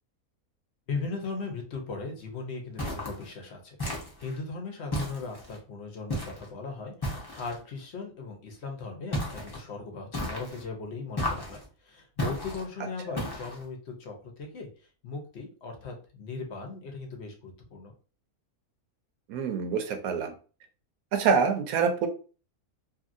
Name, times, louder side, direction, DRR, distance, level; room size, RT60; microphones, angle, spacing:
voice 1, 0.9-14.7 15.0-17.9, left 4 dB, 55° left, 2 dB, 0.9 m, -38 dB
sound 1, 2.8-3.2 3.8-4.4 4.9-5.6 6.1-6.5 7.0-7.6 9.1-9.6 10.1-10.6 11.2-11.6 12.2-12.6 13.2-13.6, left 1 dB, 25° left, 0.6 m, -33 dB
voice 2, 19.3-20.3 21.1-22.1, right 6 dB, 80° right, 6 dB, 1.0 m, -26 dB
2.8 x 2.7 x 2.5 m, 0.37 s
omnidirectional pair, 1.5 m